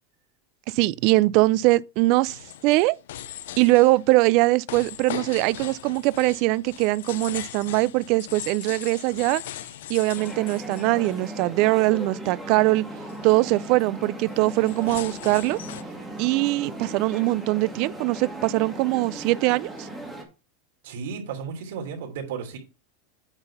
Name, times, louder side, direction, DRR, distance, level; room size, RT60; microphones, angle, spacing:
voice 1, 0.7-3.0 3.6-9.4 9.9-12.8 13.2-15.6 16.2-19.9, right 20 dB, 45° right, 0.3 m, -22 dB
sound 1, 2.3-11.6 12.0-12.4 12.7-12.8 13.1-13.3 14.3-15.8, left 12 dB, 80° left, 0.6 m, -39 dB
sound 2, 10.1-20.2, right 1 dB, 5° right, 1.7 m, -37 dB
voice 2, 20.8-22.6, right 6 dB, 75° right, 3.0 m, -34 dB
8.8 x 4.1 x 5.5 m
supercardioid pair, 170°, 0 cm